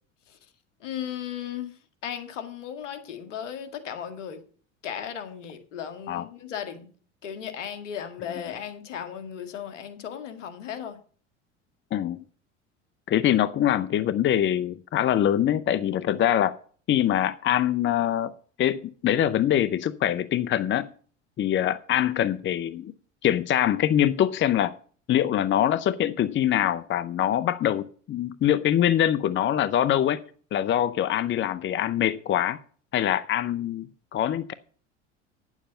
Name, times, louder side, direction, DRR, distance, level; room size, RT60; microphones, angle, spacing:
voice 1, 0.8-4.4 4.8-6.9 7.2-11.0, left 9 dB, 75° left, 2.0 m, -36 dB
voice 2, 11.9-12.2 13.1-16.6 16.9-18.3 18.6-20.9 21.4-22.9 23.2-24.7 25.1-30.2 30.5-32.6 32.9-34.5, left 11 dB, 30° left, 0.7 m, -24 dB
10.0 x 7.3 x 6.8 m
hypercardioid pair, 70°, 37 cm